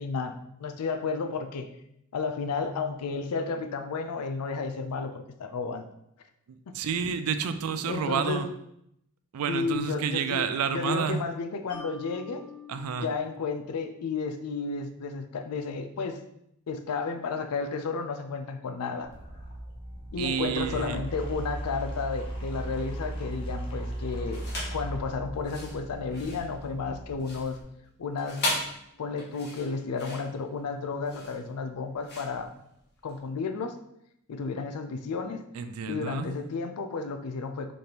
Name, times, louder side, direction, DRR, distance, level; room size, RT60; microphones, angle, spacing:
voice 1, 0.0-1.7 2.1-5.1 5.4-5.9 6.7-6.8 7.9-8.5 9.5-10.4 10.7-12.5 13.0-16.2 16.7-19.1 20.1-27.6 28.0-28.4 29.0-32.5 33.0-33.8 34.3-35.4 35.9-37.7, left 4 dB, 85° left, 7 dB, 0.4 m, -32 dB
voice 2, 6.5-8.5 9.3-11.2 12.7-13.1 20.2-21.0 35.5-36.3, right 6 dB, 70° right, 10 dB, 0.3 m, -30 dB
Mallet percussion, 11.7-15.0, left 6 dB, 55° right, 1.3 m, -48 dB
sound 1, 19.0-27.6, right 1 dB, 25° left, 0.7 m, -37 dB
sound 2, 24.3-24.8 25.3-33.2, left 1 dB, 45° left, 1.1 m, -37 dB
4.2 x 3.3 x 2.8 m, 0.77 s
head